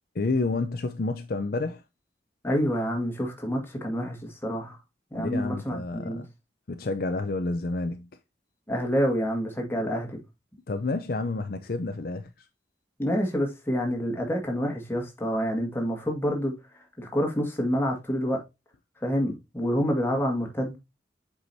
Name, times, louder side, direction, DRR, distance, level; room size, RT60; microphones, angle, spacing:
voice 1, 0.1-1.8 5.1-6.3 6.7-8.1 10.7-12.3, left 3 dB, 50° left, 0.5 m, -29 dB
voice 2, 2.4-4.8 5.1-6.2 8.7-10.2 13.0-16.5 17.0-18.4 19.0-20.8, equal, 10° left, 1.8 m, -27 dB
7.9 x 4.8 x 2.7 m
head